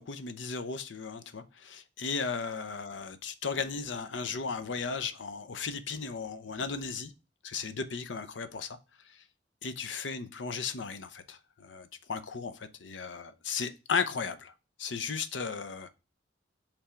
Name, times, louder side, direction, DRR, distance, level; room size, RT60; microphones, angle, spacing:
voice 1, 0.0-7.1 7.4-8.8 9.6-14.5 14.8-15.9, left 5 dB, 80° left, 0.7 m, -35 dB
5.6 x 3.4 x 4.9 m
head